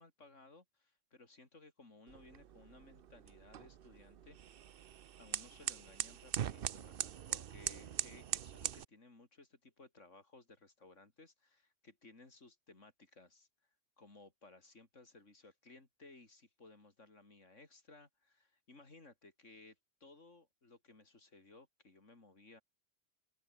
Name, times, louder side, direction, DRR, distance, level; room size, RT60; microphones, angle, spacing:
voice 1, 0.0-4.4 5.2-13.5 14.0-22.6, left 3 dB, 85° left, 4.1 m, -60 dB
sound 1, 2.1-8.8, right 9 dB, 55° right, 0.8 m, -42 dB
open air
omnidirectional pair, 1.2 m